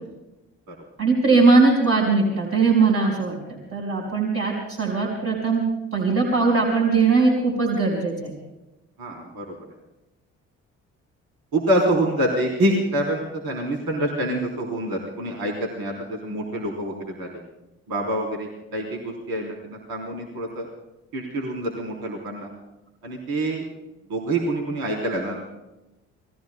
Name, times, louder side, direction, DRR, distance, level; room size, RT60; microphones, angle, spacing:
voice 1, 1.0-5.6 5.9-8.3, right 4 dB, 35° right, -1 dB, 4.7 m, -20 dB
voice 2, 9.0-9.6 11.5-17.4 17.9-20.7 21.1-22.5 23.0-23.7 24.1-25.5, right 1 dB, 60° right, -1 dB, 3.7 m, -26 dB
29.5 x 20.0 x 2.2 m, 0.99 s
figure-of-eight pair, 45°, 40 cm